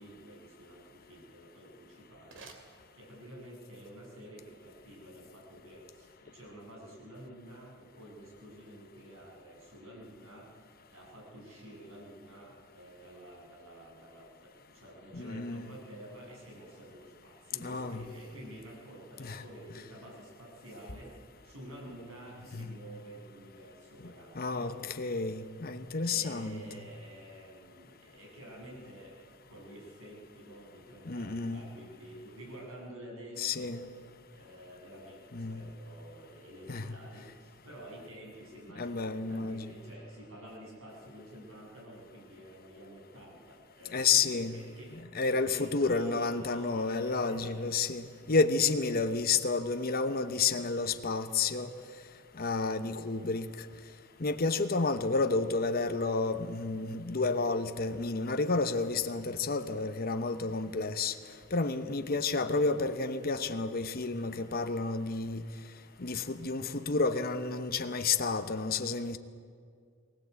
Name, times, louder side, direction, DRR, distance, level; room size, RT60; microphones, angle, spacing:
voice 1, 0.0-10.5 10.9-24.8 26.0-33.7 34.3-45.0 45.2-47.9 48.7-49.1 54.4-54.5 61.9-62.3, right 1 dB, 85° right, 7.4 m, -50 dB
sound 1, 2.1-3.5, right 4 dB, 65° right, 2.6 m, -56 dB
voice 2, 15.1-15.7 17.6-18.1 19.2-19.4 22.5-22.8 24.3-26.6 31.1-31.6 33.4-33.9 35.3-35.6 36.7-36.9 38.8-39.7 43.9-44.6 44.9-51.7 52.3-53.5 54.2-61.1 61.5-65.4 66.0-69.2, left 4 dB, 50° left, 1.0 m, -30 dB
23.0 x 17.5 x 8.3 m
head